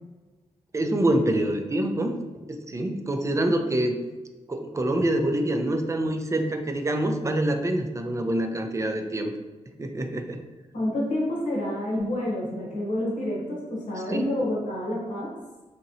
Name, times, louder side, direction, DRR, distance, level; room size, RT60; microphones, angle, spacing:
voice 1, 0.7-2.2 2.5-4.0 4.5-9.3 9.8-10.4 14.1-14.3, right 1 dB, 25° right, 5 dB, 0.4 m, -26 dB
voice 2, 10.7-15.3, left 1 dB, 80° left, -4 dB, 0.9 m, -28 dB
2.9 x 2.8 x 2.6 m, 1.2 s
cardioid pair, 60°, 13 cm